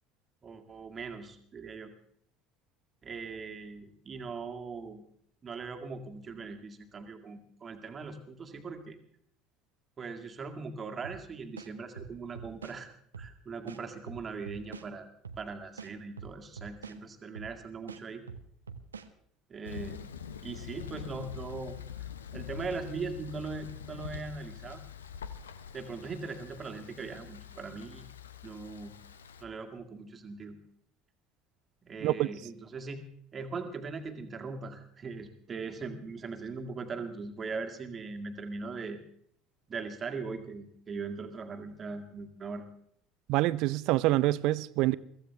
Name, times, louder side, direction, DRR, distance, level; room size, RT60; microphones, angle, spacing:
voice 1, 0.4-1.9 3.0-5.0 5.4-9.0 10.0-15.1 15.4-18.2 19.5-20.0 20.4-24.8 25.7-28.1 28.4-28.9 29.4-30.6 31.9-33.1 33.3-39.0 39.7-42.6, right 4 dB, 30° right, 2.0 m, -40 dB
sound 1, 11.0-11.2 11.6-12.8 13.1-13.3 13.7-14.9 15.2-15.4 15.8-17.0 17.3-17.5 17.9-19.1, right 5 dB, 80° right, 0.8 m, -44 dB
Thunder, 19.6-29.4, left 7 dB, 75° left, 0.8 m, -44 dB
voice 2, 43.3-45.0, right 17 dB, 55° right, 0.5 m, -26 dB
22.5 x 15.0 x 3.4 m
figure-of-eight pair, 65°, 0 cm